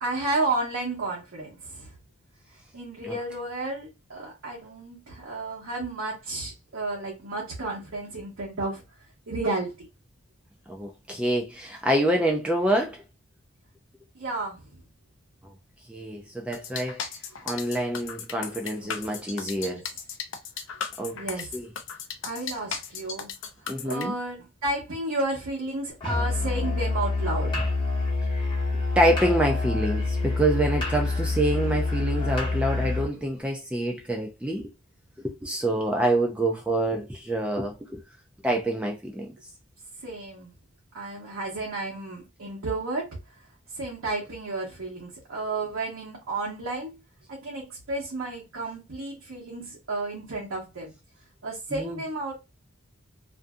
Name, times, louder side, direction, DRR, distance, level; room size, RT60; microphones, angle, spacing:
voice 1, 0.0-1.9 2.7-8.8 9.3-9.9 14.1-14.8 18.8-19.1 19.4-19.8 21.1-21.6 22.2-23.3 23.8-27.7 40.0-40.5 40.9-43.2 43.7-47.0 47.3-50.9 51.4-52.3, right 2 dB, 75° right, 0.9 m, -32 dB
voice 2, 10.7-13.0 15.9-17.1 17.4-19.8 21.0-21.2 21.5-21.7 23.7-24.1 28.7-34.7 35.2-38.0 38.4-39.3 51.7-52.0, right 1 dB, 5° right, 0.3 m, -26 dB
sound 1, 16.5-24.1, left 6 dB, 60° left, 0.5 m, -35 dB
Musical instrument, 26.0-33.1, left 3 dB, 25° left, 0.8 m, -27 dB
2.6 x 2.6 x 2.2 m
head